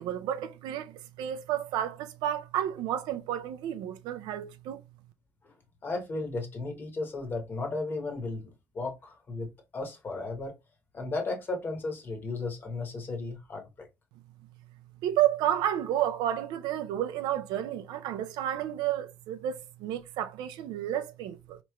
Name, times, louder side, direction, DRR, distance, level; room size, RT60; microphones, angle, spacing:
voice 1, 0.0-4.8 15.0-21.6, right 11 dB, 80° right, 0.4 m, -31 dB
voice 2, 5.8-8.5 8.7-10.5 10.9-13.9, left 3 dB, 30° left, 1.0 m, -35 dB
4.3 x 3.0 x 2.3 m
cardioid pair, 155°, 7 cm